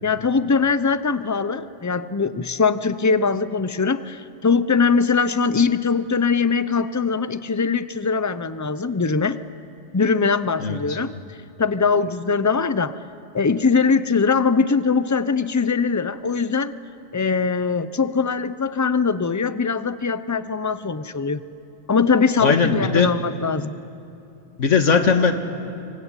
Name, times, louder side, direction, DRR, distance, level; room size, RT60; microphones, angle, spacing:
voice 1, 0.0-9.4 9.9-13.0 13.3-16.7 17.1-21.4 21.9-23.8, left 5 dB, 20° left, 14 dB, 0.4 m, -21 dB
voice 2, 10.6-11.0 22.4-23.1 24.6-25.3, left 5 dB, 75° left, 7 dB, 2.1 m, -19 dB
25.0 x 25.0 x 9.0 m, 2.7 s
omnidirectional pair, 1.3 m